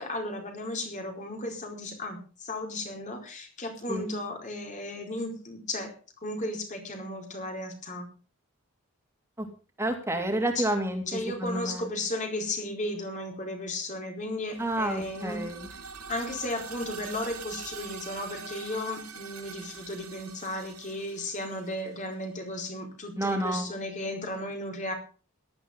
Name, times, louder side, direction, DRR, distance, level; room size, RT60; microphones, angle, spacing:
voice 1, 0.0-5.9 6.2-8.1 10.6-10.7 11.1-15.4 16.1-24.9, left 1 dB, 35° left, 3 dB, 4.6 m, -35 dB
voice 2, 9.8-11.9 14.6-15.7 23.2-23.7, right 1 dB, 10° right, 4 dB, 3.1 m, -30 dB
sound 1, 14.4-22.3, right 6 dB, 85° right, 2.9 m, -44 dB
18.0 x 13.0 x 3.7 m, 0.36 s
head